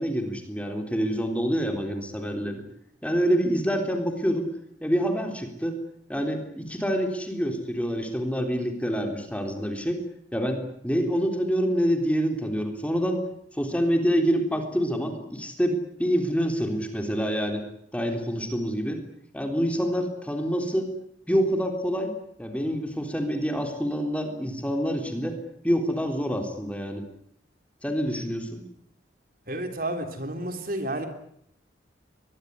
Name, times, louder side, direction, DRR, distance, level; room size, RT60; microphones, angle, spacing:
voice 1, 0.0-2.6 3.0-4.5 4.8-5.8 6.1-10.0 10.3-13.2 13.5-17.6 17.9-19.0 19.3-20.9 21.3-22.1 22.4-25.4 25.6-27.0 27.8-28.6, equal, 5° left, 4 dB, 3.7 m, -26 dB
voice 2, 29.5-31.1, right 1 dB, 50° right, 7 dB, 3.6 m, -31 dB
24.0 x 21.0 x 9.6 m, 0.69 s
head